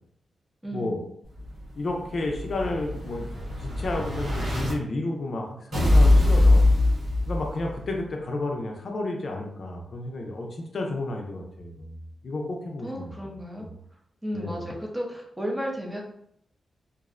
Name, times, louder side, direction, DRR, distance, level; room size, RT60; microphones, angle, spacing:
voice 1, 0.6-1.0 12.8-13.7 14.2-16.0, equal, 10° right, -1 dB, 0.5 m, -33 dB
Explosion, 1.4-4.7 5.7-7.7, left 2 dB, 90° right, 1.0 m, -22 dB
voice 2, 1.8-6.6 7.3-13.2 13.6-13.7 14.3-14.7, left 2 dB, 55° left, 1 dB, 0.4 m, -32 dB
2.5 x 2.0 x 2.4 m, 0.70 s
wide cardioid pair, 115°, 0 cm